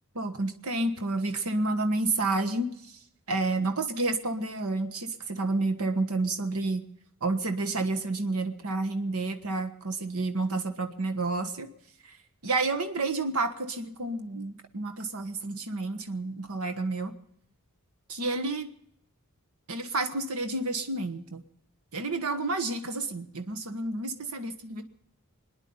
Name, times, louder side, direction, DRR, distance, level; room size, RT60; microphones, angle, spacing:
voice 1, 0.1-3.0 3.3-6.9 7.2-11.7 12.0-12.2 12.4-17.1 18.1-18.7 19.7-21.4 21.9-24.8, right 2 dB, 75° right, 8 dB, 1.3 m, -30 dB
25.5 x 10.5 x 5.5 m, 0.69 s
head